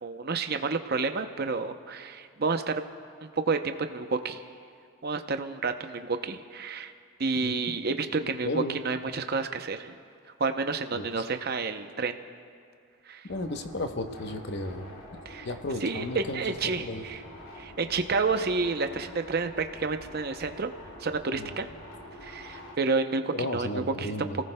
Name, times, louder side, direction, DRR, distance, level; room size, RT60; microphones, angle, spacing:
voice 1, 0.0-2.8 3.2-4.4 5.0-6.9 7.2-10.0 10.4-12.1 13.1-13.3 15.3-15.5 15.8-17.2 17.6-20.7 21.0-21.7 22.2-24.3, right 4 dB, 45° right, 8 dB, 0.6 m, -30 dB
voice 2, 8.2-8.8 11.0-11.1 13.3-14.9 15.4-17.1 21.3-21.5 23.3-24.4, left 1 dB, 50° left, 6 dB, 0.9 m, -34 dB
sound 1, 13.3-22.8, left 1 dB, 70° left, 2.6 m, -46 dB
29.5 x 18.0 x 2.2 m, 2.3 s
head